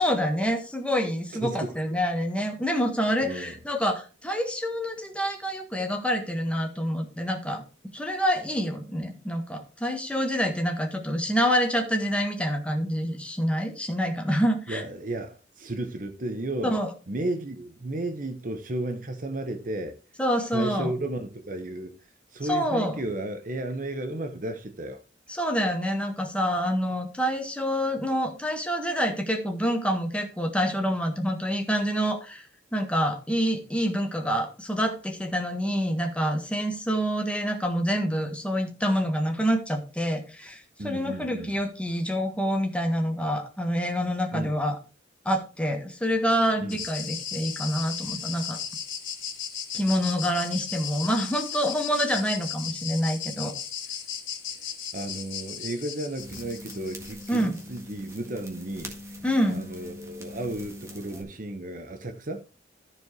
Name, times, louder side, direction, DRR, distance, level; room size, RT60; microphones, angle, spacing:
voice 1, 0.0-7.6 7.9-14.8 16.6-16.9 20.2-20.9 22.5-23.0 25.3-32.4 32.7-44.8 45.2-48.6 49.7-53.5 57.3-57.5 59.2-59.6, equal, 5° left, 1.6 m, -27 dB
voice 2, 1.4-1.7 3.2-3.6 14.7-16.8 17.1-20.0 20.5-21.9 22.3-25.0 40.8-41.5 44.3-44.5 46.6-46.8 54.9-58.9 59.5-62.4, right 1 dB, 45° right, 0.9 m, -33 dB
sound 1, 46.7-57.6, left 8 dB, 85° left, 3.1 m, -36 dB
sound 2, 56.2-61.2, left 1 dB, 15° right, 1.7 m, -42 dB
14.0 x 4.8 x 4.6 m
head